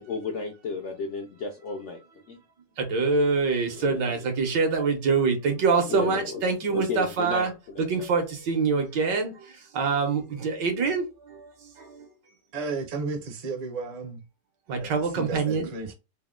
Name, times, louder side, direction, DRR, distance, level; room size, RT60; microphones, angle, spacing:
voice 1, 0.0-2.0 2.3-2.4 3.7-4.2 5.9-6.4 6.7-8.1, left 4 dB, 70° left, 0.6 m, -33 dB
voice 2, 2.8-7.5 7.8-9.3 9.7-11.0 14.7-15.7, right 4 dB, 85° right, 1.7 m, -25 dB
voice 3, 12.5-14.2 14.8-15.9, right 3 dB, 50° right, 0.4 m, -33 dB
3.9 x 2.1 x 3.6 m
omnidirectional pair, 1.9 m